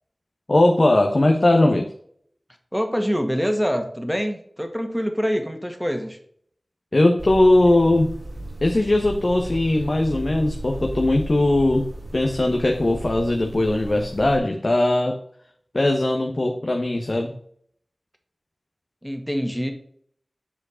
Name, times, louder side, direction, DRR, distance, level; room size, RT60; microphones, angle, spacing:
voice 1, 0.5-1.9 6.9-8.1 8.6-15.2 15.7-17.3, left 1 dB, 55° left, 2 dB, 1.1 m, -19 dB
voice 2, 2.7-6.2 19.0-19.7, equal, ahead, 5 dB, 1.7 m, -25 dB
sound 1, 7.2-14.4, right 1 dB, 85° right, 3.5 m, -35 dB
7.4 x 5.0 x 5.1 m, 0.62 s
wide cardioid pair, 40°, 0 cm